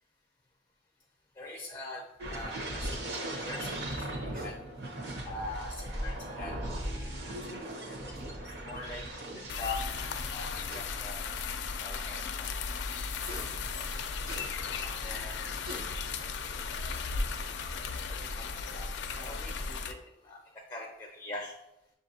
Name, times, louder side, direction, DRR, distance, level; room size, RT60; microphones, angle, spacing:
voice 1, 1.4-4.6 5.3-8.3 8.6-9.1 9.3-9.8 10.3-12.5 13.5-13.7 14.8-15.4 17.9-20.0 20.2-20.4 20.7-21.6, left 2 dB, 20° left, 0 dB, 0.4 m, -44 dB
sound 1, 2.2-10.7 11.0-11.3, right 1 dB, 70° right, 1.0 m, -38 dB
sound 2, 4.3-4.6 6.1-6.2 7.7-7.8 8.1-8.3 8.9-9.0 9.2-9.4 10.7-10.9 11.7-11.8 13.3-13.5 14.3-14.5 15.2-15.3 15.6-15.9, right 1 dB, 55° right, 0.6 m, -44 dB
sound 3, 9.5-19.9, left 4 dB, 80° left, 0.4 m, -36 dB
6.5 x 2.6 x 2.7 m, 0.88 s
head